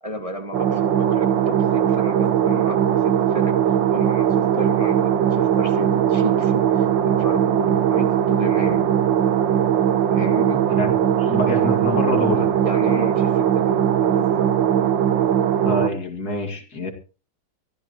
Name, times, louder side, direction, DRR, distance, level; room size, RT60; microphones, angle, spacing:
voice 1, 0.0-3.0 3.3-3.6 3.9-8.9 10.1-10.6 12.6-14.5, right 1 dB, 20° right, 4 dB, 1.7 m, -31 dB
sound 1, 0.5-15.9, right 9 dB, 70° right, 1.7 m, -19 dB
voice 2, 10.7-12.5 15.6-16.9, left 1 dB, 50° left, 4 dB, 2.8 m, -26 dB
23.0 x 14.5 x 3.0 m, 0.35 s
omnidirectional pair, 2.1 m